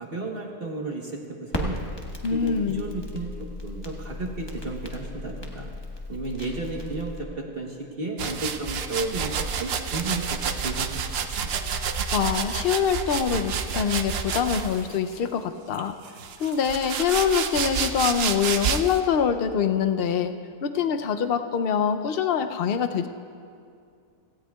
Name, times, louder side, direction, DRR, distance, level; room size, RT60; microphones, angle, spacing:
voice 1, 0.0-1.8 2.3-5.7 6.1-11.5, right 2 dB, 40° right, 0 dB, 1.2 m, -33 dB
Crackle, 1.5-7.2, left 1 dB, 20° left, 1.0 m, -36 dB
voice 2, 2.2-2.8 12.1-16.0 16.4-20.3 20.6-23.1, left 7 dB, 65° left, 8 dB, 0.5 m, -24 dB
sound 1, 8.2-15.0 15.7-19.0, right 6 dB, 60° right, 0.7 m, -29 dB
17.0 x 16.0 x 2.3 m, 2.3 s
omnidirectional pair, 1.6 m